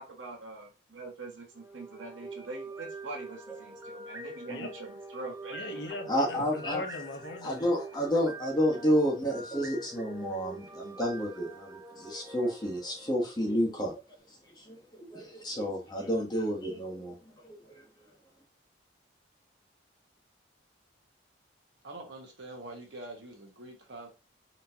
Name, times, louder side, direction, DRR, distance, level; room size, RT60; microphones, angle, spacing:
voice 1, 0.0-5.6, right 3 dB, 85° right, 1.4 m, -43 dB
sound 1, 1.5-13.7, right 2 dB, 10° right, 0.5 m, -45 dB
voice 2, 5.5-7.6, left 2 dB, 65° left, 1.0 m, -39 dB
voice 3, 6.1-6.8 7.4-13.9 14.6-17.2 17.4-17.5, equal, 20° left, 1.1 m, -30 dB
voice 4, 21.8-24.1, right 2 dB, 65° right, 1.3 m, -45 dB
4.2 x 3.1 x 2.8 m
head